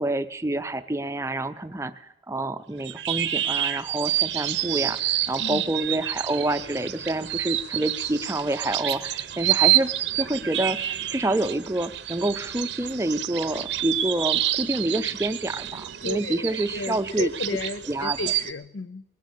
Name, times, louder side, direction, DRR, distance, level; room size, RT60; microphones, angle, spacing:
voice 1, 0.0-9.9 10.2-17.3 17.9-18.2, right 1 dB, 15° right, 0.5 m, -28 dB
sound 1, 2.8-18.5, right 13 dB, 75° right, 0.8 m, -28 dB
voice 2, 16.0-19.0, left 3 dB, 85° left, 0.6 m, -33 dB
20.0 x 8.4 x 8.2 m
head